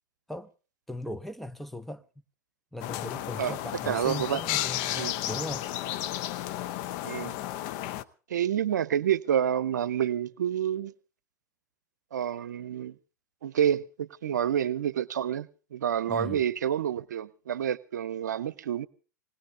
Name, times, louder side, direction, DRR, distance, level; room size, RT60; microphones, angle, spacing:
voice 1, 0.9-2.1 2.7-5.7 16.1-16.4, left 1 dB, ahead, 0.7 m, -38 dB
sound 1, 2.8-8.0, left 13 dB, 45° left, 0.7 m, -33 dB
voice 2, 3.9-4.4 5.0-5.1 7.0-7.3 8.3-10.9 12.1-12.9 13.4-18.9, right 9 dB, 70° right, 0.7 m, -28 dB
19.5 x 19.0 x 3.5 m
figure-of-eight pair, 90°, 10 cm